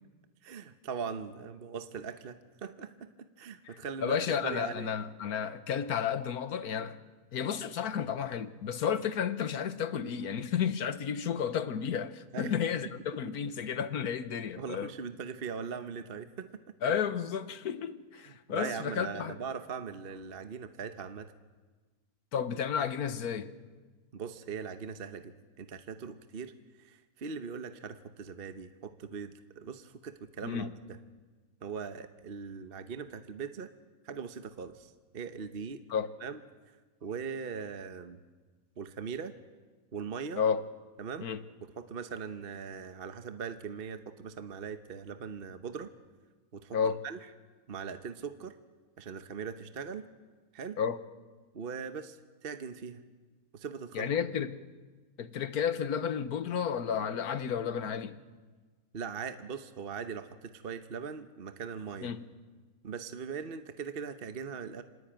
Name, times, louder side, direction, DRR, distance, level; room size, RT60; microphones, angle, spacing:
voice 1, 0.4-4.2 4.4-4.9 12.3-12.5 14.6-16.5 18.2-21.3 24.1-26.5 26.8-31.0 31.6-33.7 34.0-35.8 36.2-36.4 37.0-38.2 38.8-39.3 39.9-40.4 41.0-41.3 41.6-45.9 46.5-46.8 47.0-47.2 47.7-48.6 49.0-50.1 50.5-50.8 51.5-53.0 53.5-54.1 58.9-62.1 62.8-64.8, right 6 dB, 45° right, 1.1 m, -40 dB
voice 2, 3.7-7.0 7.3-14.9 16.8-19.4 22.3-23.5 30.4-30.7 35.9-36.1 40.4-40.6 41.2-41.4 46.7-47.0 50.8-51.0 53.9-54.6 55.2-58.2 62.0-62.3, left 7 dB, 90° left, 1.6 m, -32 dB
26.0 x 19.0 x 9.0 m
omnidirectional pair, 1.6 m